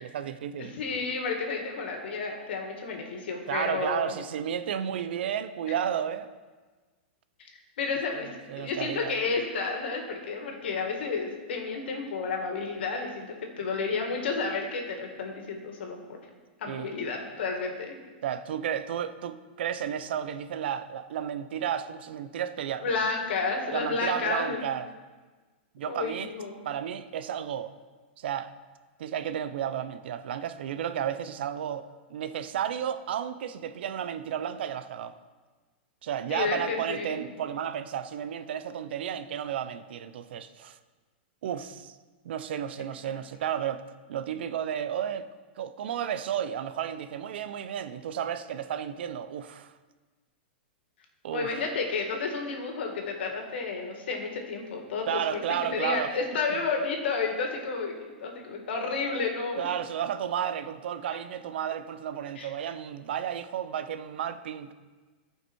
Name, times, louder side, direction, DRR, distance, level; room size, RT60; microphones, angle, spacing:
voice 1, 0.0-0.7 3.5-6.3 8.2-9.2 16.7-16.9 18.2-22.9 23.7-24.9 25.7-26.3 26.6-27.8 28.2-28.5 29.0-35.2 36.0-40.8 41.4-42.0 42.2-45.3 45.6-49.7 51.2-51.6 55.1-56.2 56.5-56.6 59.6-64.7, right 9 dB, 70° right, 0.7 m, -32 dB
voice 2, 0.7-4.1 7.4-7.5 7.8-8.3 8.6-16.2 16.6-17.9 22.8-24.6 25.9-26.5 36.3-37.2 51.3-55.4 55.7-59.7 62.4-62.5, left 4 dB, 75° left, 2.2 m, -31 dB
14.5 x 5.6 x 4.6 m
supercardioid pair, 150°, 6 cm